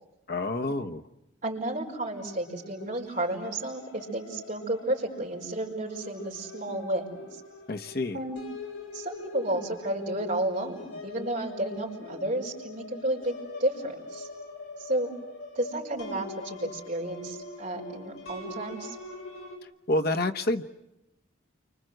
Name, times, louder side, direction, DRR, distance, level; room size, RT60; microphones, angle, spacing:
voice 1, 0.3-1.0 7.7-8.2 19.9-20.6, left 2 dB, 50° left, 7 dB, 1.0 m, -28 dB
voice 2, 1.4-7.4 8.1-8.4 8.9-13.3 13.6-14.3 14.8-15.1 15.6-19.0, right 1 dB, 40° right, -1 dB, 5.4 m, -32 dB
sound 1, 2.0-19.6, left 3 dB, 75° left, 7.0 m, -44 dB
30.0 x 25.5 x 7.8 m, 0.92 s
head